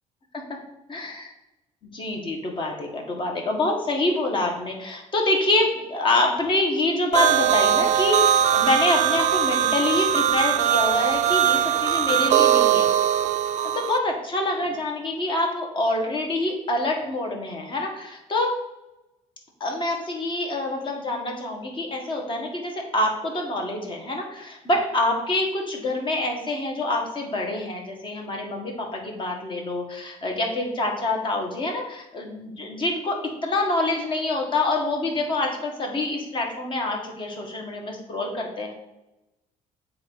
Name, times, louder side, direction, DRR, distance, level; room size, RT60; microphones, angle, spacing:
voice 1, 1.9-12.9 13.6-18.6 19.6-38.7, left 2 dB, 35° left, 1 dB, 1.7 m, -26 dB
sound 1, 7.1-14.0, right 10 dB, 60° right, 0.4 m, -21 dB
7.8 x 2.9 x 5.6 m, 0.93 s
cardioid pair, 110°, 14 cm